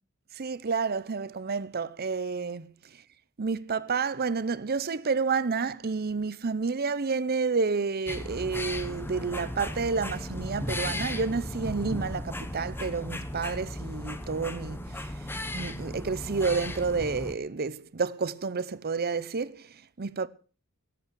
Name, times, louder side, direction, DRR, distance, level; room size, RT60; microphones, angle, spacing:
voice 1, 0.3-3.0 3.4-20.3, right 4 dB, 45° right, 0.7 m, -30 dB
sound 1, 8.1-17.3, left 1 dB, 10° left, 1.1 m, -36 dB
18.0 x 8.5 x 6.2 m
head